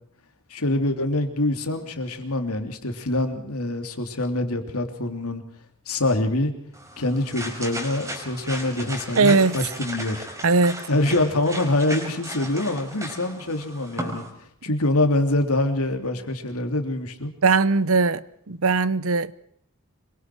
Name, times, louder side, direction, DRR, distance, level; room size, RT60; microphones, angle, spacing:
voice 1, 0.5-5.4 5.9-6.5 7.0-10.3 10.9-14.2 14.6-17.3, left 2 dB, 85° left, 3.1 m, -25 dB
sound 1, 6.7-14.3, right 1 dB, 15° right, 4.5 m, -36 dB
voice 2, 9.2-9.6 10.4-10.8 17.4-19.3, right 4 dB, 70° right, 0.8 m, -19 dB
25.5 x 23.5 x 4.6 m
head